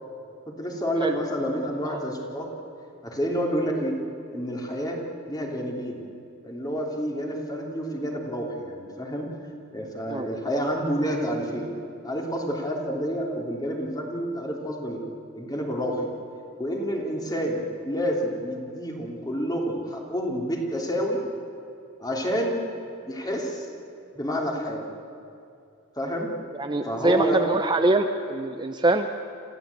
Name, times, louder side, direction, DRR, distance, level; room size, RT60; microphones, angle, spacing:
voice 1, 0.5-2.5 3.0-4.0 4.3-5.0 5.3-6.0 6.4-9.3 9.7-11.7 12.0-15.0 15.3-16.0 16.6-21.2 22.0-22.7 23.0-23.7 24.1-24.8 26.0-26.3 26.8-27.4, equal, 20° left, 0 dB, 3.2 m, -29 dB
voice 2, 26.5-29.1, right 2 dB, 20° right, 6 dB, 0.7 m, -24 dB
27.5 x 15.0 x 8.5 m, 2.6 s
head